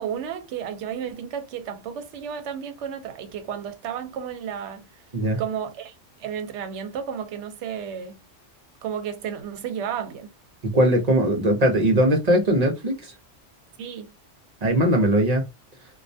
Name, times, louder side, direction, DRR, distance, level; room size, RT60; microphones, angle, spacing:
voice 1, 0.0-4.8 5.4-5.9 6.2-8.2 8.8-10.3 13.8-14.1, right 8 dB, 75° right, 0.9 m, -32 dB
voice 2, 10.6-13.1 14.6-15.5, right 1 dB, 45° right, 0.5 m, -20 dB
2.3 x 2.1 x 2.5 m
omnidirectional pair, 1.2 m